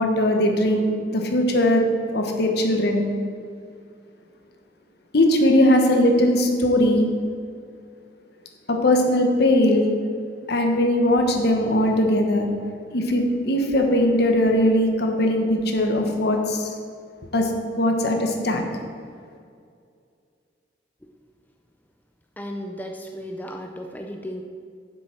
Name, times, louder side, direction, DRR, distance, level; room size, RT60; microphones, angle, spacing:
voice 1, 0.0-1.8 2.1-3.0 5.1-7.1 8.7-9.9 10.5-12.5 12.9-16.7 17.3-17.5 17.8-18.6, left 1 dB, 60° left, 3 dB, 1.3 m, -20 dB
voice 2, 22.4-24.4, equal, 10° left, 3 dB, 0.5 m, -34 dB
7.7 x 7.3 x 6.0 m, 2.3 s
head